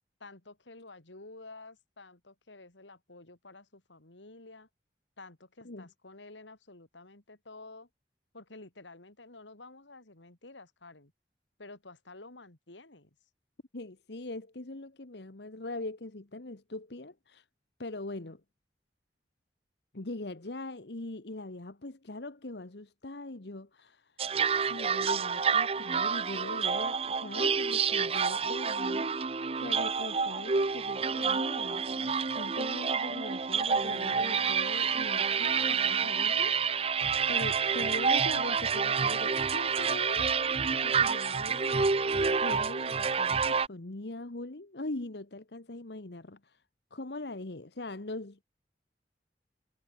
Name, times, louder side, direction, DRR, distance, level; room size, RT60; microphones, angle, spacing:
voice 1, 0.2-4.7 5.2-7.9 8.3-11.1 11.6-13.1, left 2 dB, 90° left, 3.3 m, -51 dB
voice 2, 13.7-17.4 17.8-18.4 19.9-24.2 24.6-29.1 29.6-37.0 37.3-41.9 42.4-46.6 46.9-48.4, left 2 dB, 65° left, 1.3 m, -41 dB
sound 1, 24.2-43.7, right 5 dB, 30° right, 0.6 m, -28 dB
head